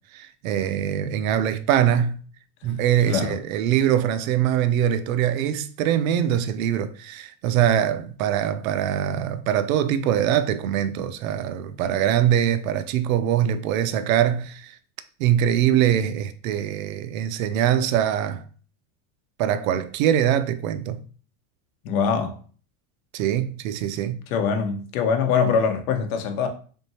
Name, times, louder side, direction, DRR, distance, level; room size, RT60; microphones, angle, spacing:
voice 1, 0.1-2.2 2.6-14.8 15.2-18.4 19.4-21.0 23.1-24.2, right 10 dB, 70° right, 0.5 m, -23 dB
voice 2, 3.1-3.4 21.8-22.4 24.3-26.5, left 6 dB, 75° left, 0.9 m, -23 dB
3.8 x 3.6 x 2.7 m
supercardioid pair, 170°, 43 cm